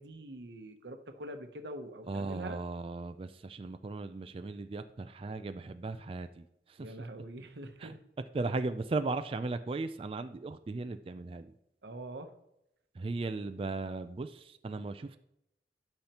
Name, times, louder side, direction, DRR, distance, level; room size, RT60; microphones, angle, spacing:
voice 1, 0.0-2.6 6.8-8.0 11.8-12.3, right 1 dB, 70° right, 6 dB, 0.9 m, -44 dB
voice 2, 2.1-6.9 7.8-8.0 8.3-11.5 13.0-15.2, right 3 dB, 30° right, 9 dB, 0.3 m, -37 dB
12.0 x 5.6 x 2.9 m, 0.82 s
head